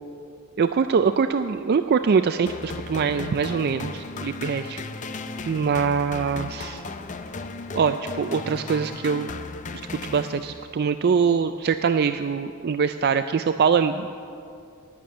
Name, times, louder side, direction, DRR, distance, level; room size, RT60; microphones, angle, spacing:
voice 1, 0.6-4.8 5.5-6.8 7.7-9.3 10.0-14.2, right 6 dB, 45° right, 9 dB, 0.3 m, -23 dB
sound 1, 2.5-10.8, left 3 dB, 35° left, 0.5 m, -36 dB
11.5 x 9.6 x 8.5 m, 2.5 s
head